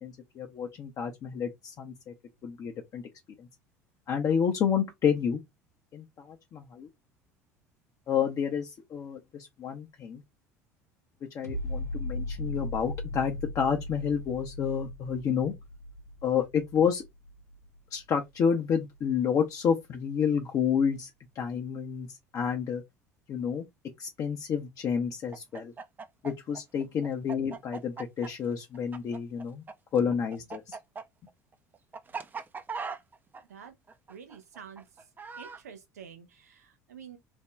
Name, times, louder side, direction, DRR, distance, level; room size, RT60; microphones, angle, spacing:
voice 1, 0.0-2.1 2.4-3.0 3.4-3.5 4.1-5.4 5.9-6.9 8.1-10.2 11.3-15.5 16.2-17.0 17.9-21.1 21.4-22.8 23.3-23.7 24.0-25.7 26.2-29.6 29.9-30.8, left 7 dB, 40° left, 0.6 m, -29 dB
sound 1, 11.4-18.5 18.9-19.0, left 1 dB, 90° left, 0.9 m, -38 dB
Chicken rooster, 25.3-29.7 30.0-35.6, right 5 dB, 20° right, 0.4 m, -40 dB
voice 2, 34.1-34.8 35.4-37.2, right 7 dB, 75° right, 0.7 m, -48 dB
3.4 x 2.2 x 3.2 m
figure-of-eight pair, 65°, 9 cm